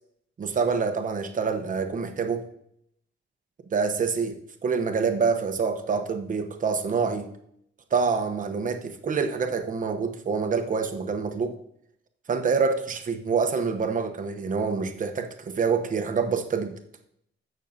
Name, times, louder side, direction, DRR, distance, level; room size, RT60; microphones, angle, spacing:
voice 1, 0.4-2.5 3.7-7.3 7.9-11.6 12.3-16.8, right 5 dB, 40° right, 6 dB, 0.9 m, -26 dB
15.5 x 6.4 x 2.8 m, 0.72 s
wide cardioid pair, 150°, 21 cm